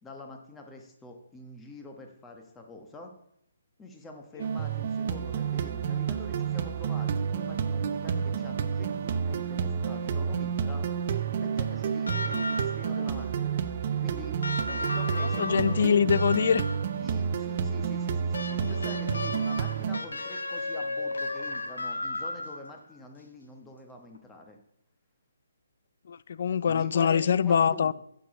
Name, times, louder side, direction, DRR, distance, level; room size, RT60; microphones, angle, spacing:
voice 1, 0.0-3.1 3.8-10.9 11.4-13.5 14.0-14.4 14.6-16.0 17.0-24.6 26.6-27.9, left 2 dB, 10° left, 3 dB, 1.2 m, -46 dB
sound 1, 4.4-20.0, right 7 dB, 45° right, 0.7 m, -30 dB
sound 2, 12.1-13.0 14.4-17.0 18.3-22.8 24.1-24.2, left 2 dB, 85° left, 1.3 m, -35 dB
voice 2, 15.4-16.6 26.1-27.9, left 7 dB, 55° left, 20 dB, 0.3 m, -24 dB
8.4 x 7.0 x 4.9 m, 0.75 s
hypercardioid pair, 155°, 0 cm